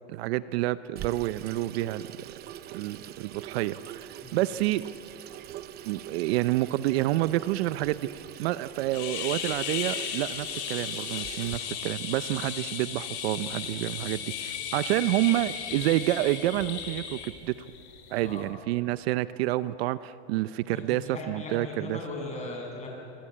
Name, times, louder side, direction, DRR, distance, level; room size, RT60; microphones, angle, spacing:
voice 1, 0.1-2.0 2.7-4.8 5.8-17.5 18.1-22.0, right 16 dB, 65° right, 15 dB, 0.7 m, -28 dB
Water tap faucet / Sink (filling or washing), 1.0-11.6, right 12 dB, 30° right, 0.8 m, -43 dB
sound 1, 8.9-17.3, left 8 dB, 55° left, 4.4 m, -35 dB
sound 2, 12.1-18.5, left 6 dB, 70° left, 7.5 m, -45 dB
voice 2, 20.7-22.9, left 2 dB, 20° left, 0 dB, 7.5 m, -38 dB
27.5 x 24.0 x 8.7 m, 2.8 s
supercardioid pair, 150°, 34 cm